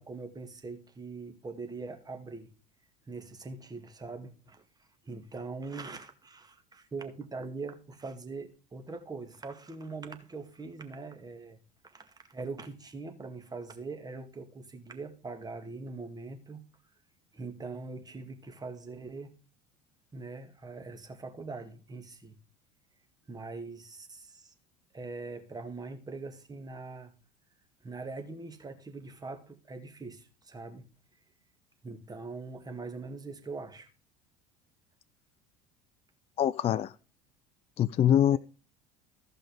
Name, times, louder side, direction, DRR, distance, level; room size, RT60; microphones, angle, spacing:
voice 1, 0.0-2.5 3.1-4.6 5.0-11.6 11.8-16.6 17.3-19.3 20.1-22.4 23.3-24.5 24.9-27.1 27.8-30.9 31.8-33.9 38.3-38.4, right 3 dB, 20° right, 2.0 m, -42 dB
voice 2, 36.4-36.9 37.8-38.4, left 10 dB, 30° left, 0.4 m, -24 dB
15.0 x 5.6 x 5.1 m
hypercardioid pair, 70°, 20 cm